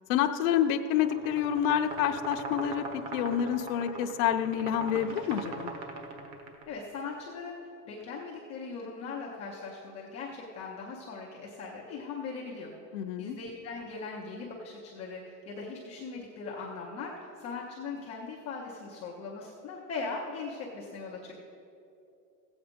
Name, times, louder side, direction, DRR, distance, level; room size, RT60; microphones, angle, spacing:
voice 1, 0.1-2.9 3.1-5.7 12.9-13.4, left 10 dB, 55° left, 4 dB, 0.6 m, -28 dB
sound 1, 0.9-6.7, right 3 dB, 45° right, 1.5 m, -40 dB
voice 2, 6.7-7.6 7.9-12.7 13.2-21.3, left 4 dB, 15° left, -5 dB, 0.3 m, -40 dB
15.0 x 8.1 x 5.1 m, 2.7 s
supercardioid pair, 155°, 50 cm